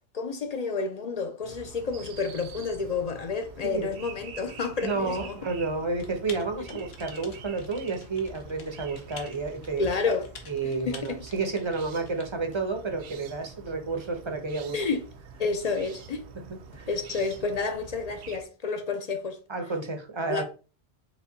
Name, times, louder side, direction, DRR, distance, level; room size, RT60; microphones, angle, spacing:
voice 1, 0.1-5.4 9.8-10.3 10.6-11.2 14.7-15.0 15.4-16.2 16.9-19.4 20.3-20.4, left 4 dB, 50° left, 0.5 m, -30 dB
sound 1, 1.4-18.4, right 5 dB, 65° right, 0.7 m, -46 dB
voice 2, 4.8-9.8 10.5-14.8 16.7-16.9 19.5-20.4, right 3 dB, 30° right, 0.6 m, -31 dB
sound 2, 5.1-5.6 7.4-7.7 9.8-10.2 12.5-12.8 14.7-14.9 16.7-17.0, equal, 30° left, 0.8 m, -49 dB
Typing, 6.0-12.2, left 5 dB, 70° left, 1.0 m, -48 dB
4.9 x 2.2 x 3.9 m
omnidirectional pair, 1.1 m